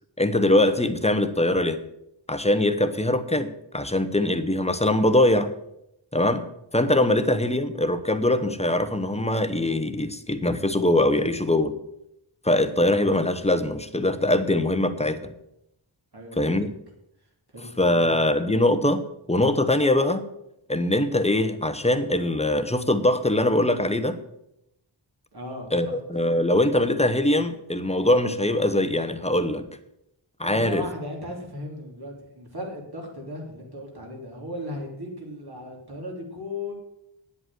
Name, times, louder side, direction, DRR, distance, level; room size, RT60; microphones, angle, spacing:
voice 1, 0.2-1.8 2.3-5.5 6.1-6.4 6.7-11.7 12.4-15.3 16.4-16.7 17.8-19.0 19.3-20.2 20.7-24.2 25.7-29.6 30.4-30.8, left 1 dB, 15° left, 10 dB, 0.9 m, -22 dB
voice 2, 16.1-16.6 17.5-18.2 25.3-26.0 30.5-36.7, left 1 dB, 50° right, -1 dB, 3.4 m, -36 dB
9.7 x 8.0 x 7.7 m, 0.83 s
wide cardioid pair, 90°, 48 cm